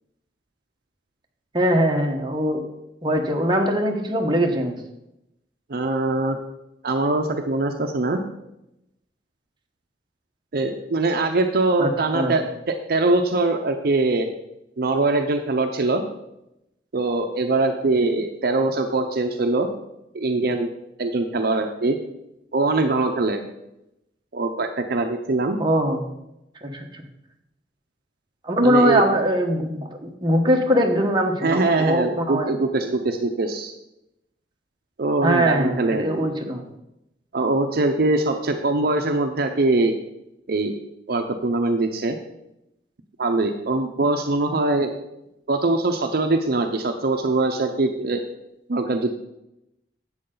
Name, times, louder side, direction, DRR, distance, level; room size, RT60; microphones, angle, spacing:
voice 1, 1.5-2.6 3.0-4.8 11.8-12.4 25.6-26.1 26.6-27.0 28.4-32.5 35.2-36.6, equal, 25° right, 1 dB, 1.2 m, -21 dB
voice 2, 5.7-6.4 6.8-8.2 10.5-14.3 14.8-16.0 16.9-19.7 20.1-20.7 21.0-22.0 22.5-23.4 24.3-25.6 28.6-29.0 31.4-33.7 35.0-36.0 37.3-39.9 40.5-40.8 41.1-42.2 43.2-44.9 45.5-48.2 48.7-49.1, right 2 dB, 60° right, 5 dB, 0.7 m, -22 dB
11.0 x 7.8 x 3.8 m, 0.86 s
head